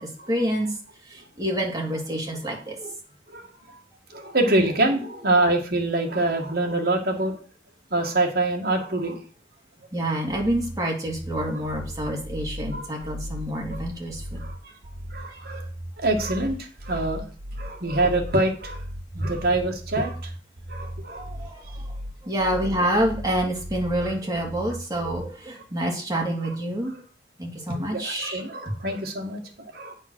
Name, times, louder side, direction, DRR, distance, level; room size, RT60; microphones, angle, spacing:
voice 1, 0.3-0.7 1.1-2.9 3.7-3.8 9.9-14.4 21.2-21.6 22.2-26.9 27.4-28.4, right 1 dB, 20° right, -1 dB, 2.4 m, -27 dB
voice 2, 4.1-7.4 7.9-9.2 12.7-13.1 13.7-13.8 14.4-14.5 15.1-15.7 16.0-17.2 17.6-18.8 19.1-20.3 20.7-21.2 22.4-22.6 24.0-24.1 26.4-26.6 27.9-29.4 29.7-29.9, right 2 dB, 55° right, 2 dB, 2.0 m, -25 dB
sound 1, 10.3-25.3, equal, 90° right, 1.5 m, -37 dB
8.7 x 5.5 x 6.2 m, 0.40 s
head